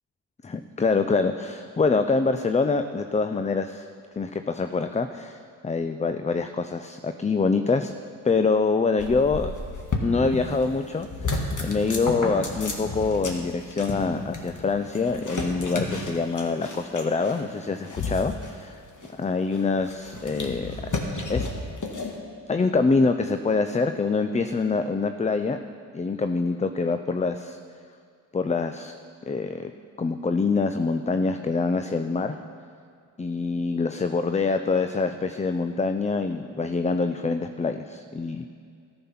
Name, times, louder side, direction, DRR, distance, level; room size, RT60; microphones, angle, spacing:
voice 1, 0.4-3.9 4.2-7.9 8.2-9.5 10.0-18.8 19.1-20.7 21.3-21.5 22.5-25.6 25.9-27.6 28.3-28.9 29.3-29.7 30.0-32.4 33.2-38.5, left 4 dB, 15° left, 8 dB, 0.5 m, -25 dB
sound 1, 9.0-10.7 11.0-22.2, left 2 dB, 40° left, 1.9 m, -32 dB
13.5 x 6.1 x 5.7 m, 2.3 s
hypercardioid pair, 40°, 48 cm